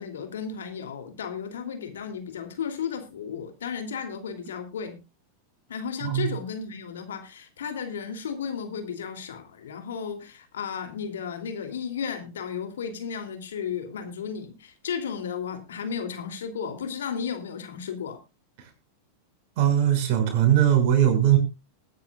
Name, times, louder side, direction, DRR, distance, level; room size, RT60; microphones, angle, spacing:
voice 1, 0.0-5.0 5.7-18.2, left 7 dB, 80° left, 2.9 m, -34 dB
voice 2, 6.0-6.3 18.6-18.7 19.6-21.4, right 10 dB, 60° right, 6.2 m, -20 dB
20.5 x 10.5 x 2.4 m
hypercardioid pair, 105°, 0 cm